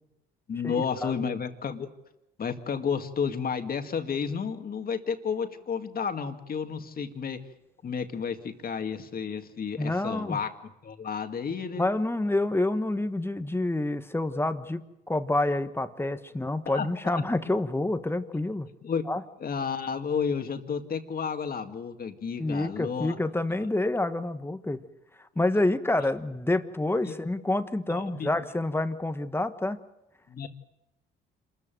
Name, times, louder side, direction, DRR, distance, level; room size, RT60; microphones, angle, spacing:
voice 1, 0.5-1.9 2.4-7.4 7.8-10.5 10.8-11.9 16.7-17.2 18.8-19.0 19.4-23.1 27.0-27.1 27.9-28.3 30.3-30.5, left 6 dB, 50° left, 7 dB, 2.2 m, -31 dB
voice 2, 9.8-10.4 11.8-18.7 19.1-19.2 22.4-24.8 25.4-29.8, left 2 dB, 10° left, 10 dB, 1.4 m, -28 dB
26.5 x 14.5 x 9.2 m, 0.94 s
cardioid pair, 90°, 20 cm